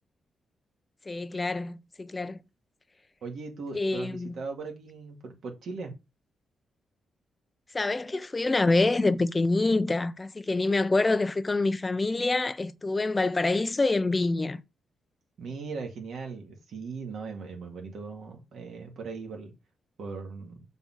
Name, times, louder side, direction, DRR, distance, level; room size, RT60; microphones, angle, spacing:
voice 1, 1.1-2.4 3.7-4.3 7.7-14.6, left 2 dB, 20° left, 0.5 m, -26 dB
voice 2, 3.2-5.9 15.4-19.5 20.0-20.6, right 4 dB, 65° right, 2.4 m, -39 dB
7.0 x 4.2 x 6.3 m
wide cardioid pair, 150°, 0 cm